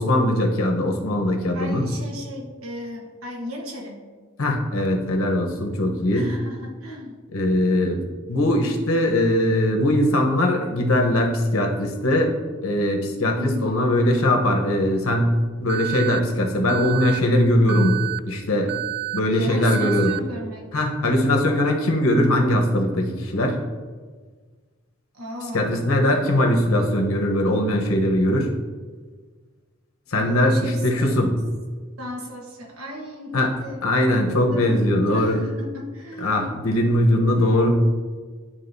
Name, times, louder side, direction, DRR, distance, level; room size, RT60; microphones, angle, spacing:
voice 1, 0.0-1.9 4.4-6.3 7.3-8.0 8.3-12.3 12.6-15.3 15.6-18.8 19.1-20.1 20.7-23.6 25.5-28.5 30.1-31.3 33.3-33.5 33.8-35.4 36.2-37.7, left 1 dB, 85° left, 2 dB, 1.0 m, -20 dB
voice 2, 1.5-4.0 6.1-7.2 13.3-13.8 19.3-20.7 25.1-25.8 30.1-31.1 32.0-33.8 34.5-34.8 35.1-36.7 37.1-37.7, left 1 dB, 85° right, 0 dB, 1.2 m, -35 dB
Alarm, 15.7-16.2 16.7-17.2 17.7-18.2 18.7-19.2 19.7-20.2, right 17 dB, 55° right, 0.3 m, -29 dB
11.0 x 3.7 x 2.7 m, 1.5 s
head